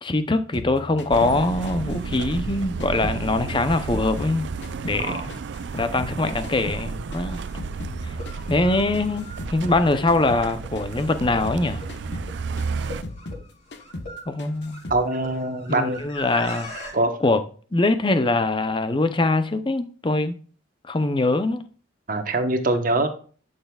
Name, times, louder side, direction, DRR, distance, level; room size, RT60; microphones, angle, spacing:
voice 1, 0.0-4.5 4.8-5.4 5.7-7.4 8.5-11.8 14.3-14.8 15.7-16.7 17.2-17.4 17.7-20.4 20.9-21.6, left 2 dB, 25° left, 0.7 m, -23 dB
sound 1, 0.5-3.2 3.5-6.2 6.4-9.8 10.1-10.5 10.7-13.5 13.7-14.1 14.4-15.0, left 1 dB, 65° left, 1.0 m, -37 dB
sound 2, 1.1-13.0, right 5 dB, 65° right, 0.4 m, -32 dB
sound 3, 6.9-7.0 8.0-16.9, equal, 45° left, 4.6 m, -40 dB
voice 2, 14.9-16.0 16.9-17.1 22.1-23.1, right 2 dB, 45° right, 1.1 m, -23 dB
11.5 x 6.6 x 2.4 m
head